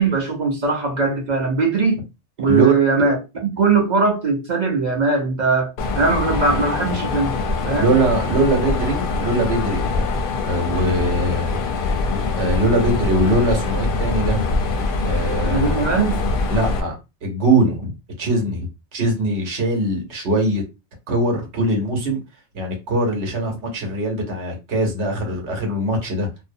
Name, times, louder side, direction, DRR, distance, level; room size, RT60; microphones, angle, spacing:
voice 1, 0.0-2.0 2.4-3.2 3.5-5.7 6.0-7.4 7.6-7.9 15.5-16.2, right 4 dB, 45° right, 0.7 m, -19 dB
Mechanisms, 5.8-16.8, left 3 dB, 60° left, 0.6 m, -23 dB
voice 2, 7.8-10.1 10.4-11.5 12.4-14.6 15.0-15.8 16.5-17.0 17.2-20.6 21.1-22.2 22.5-26.4, right 1 dB, 75° right, 1.2 m, -21 dB
2.6 x 2.0 x 2.6 m
omnidirectional pair, 1.2 m